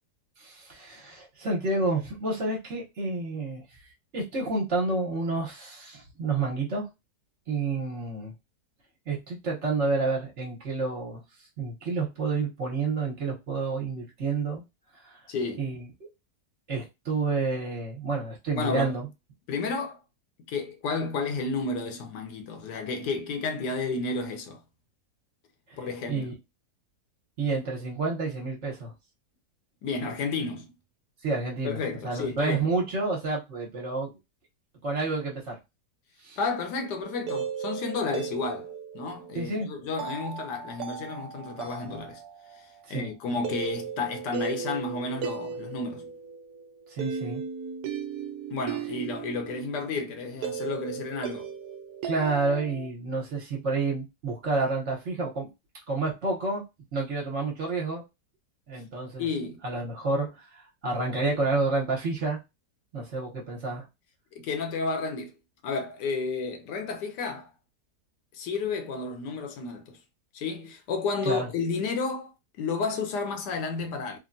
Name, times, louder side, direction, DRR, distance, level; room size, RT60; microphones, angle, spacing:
voice 1, 0.4-3.6 4.1-6.9 7.5-8.3 9.1-11.2 11.6-14.6 14.9-15.2 15.6-15.9 16.7-19.1 26.1-26.3 27.4-28.9 31.2-31.8 32.0-34.2 34.8-35.6 36.2-36.4 39.3-39.7 42.9-43.1 46.9-47.4 52.0-55.5 55.9-56.6 56.9-58.0 58.7-59.3 59.6-62.4 62.9-63.9 71.2-71.5, right 3 dB, 50° right, 1.1 m, -29 dB
voice 2, 15.3-15.6 18.5-19.0 19.5-20.0 20.5-24.6 25.8-26.3 29.8-30.7 31.6-32.7 36.4-42.2 42.5-46.1 48.5-51.5 59.2-59.6 64.3-65.3 65.6-67.5 68.3-70.0 70.3-74.2, left 4 dB, 85° left, 1.3 m, -32 dB
sound 1, 37.0-52.9, right 7 dB, 75° right, 1.1 m, -37 dB
3.4 x 2.2 x 2.5 m
omnidirectional pair, 1.8 m